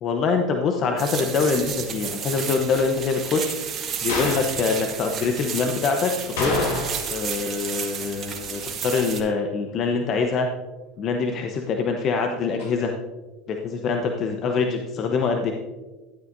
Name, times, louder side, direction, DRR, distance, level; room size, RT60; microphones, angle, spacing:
voice 1, 0.0-3.5 4.0-10.5 11.0-12.9 13.5-15.5, left 5 dB, 45° left, 4 dB, 0.9 m, -24 dB
sound 1, 1.0-9.2, right 7 dB, 40° right, 1.8 m, -32 dB
sound 2, 4.1-4.5 6.4-7.2 7.5-7.6 12.6-12.7, left 2 dB, 80° left, 3.1 m, -26 dB
13.0 x 8.6 x 2.7 m, 1.2 s
hypercardioid pair, 90°, 0 cm